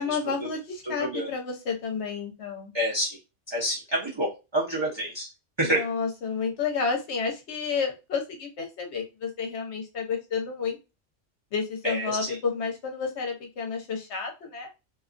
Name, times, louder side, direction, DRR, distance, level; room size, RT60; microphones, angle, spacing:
voice 1, 0.0-2.7 5.6-10.8 11.5-14.7, left 5 dB, 70° left, 3 dB, 1.1 m, -31 dB
voice 2, 0.8-1.3 2.7-3.2 3.5-5.3 5.6-5.9 11.8-12.4, right 1 dB, 30° right, -5 dB, 0.7 m, -28 dB
2.6 x 2.3 x 2.5 m, 0.27 s
omnidirectional pair, 1.2 m